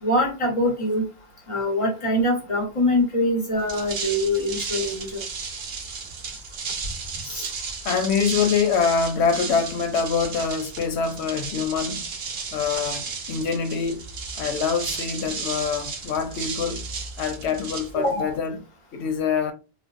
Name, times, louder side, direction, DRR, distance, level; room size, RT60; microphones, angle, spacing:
voice 1, 0.0-1.1 1.5-5.2 7.2-7.5 17.9-18.3, left 1 dB, 30° left, 1.0 m, -23 dB
sound 1, 3.6-18.4, right 5 dB, 70° right, 0.9 m, -34 dB
voice 2, 7.8-12.0 12.5-14.1 14.4-16.9 17.2-18.5 18.9-19.5, left 6 dB, 90° left, 0.9 m, -25 dB
3.2 x 2.1 x 2.4 m
omnidirectional pair, 1.1 m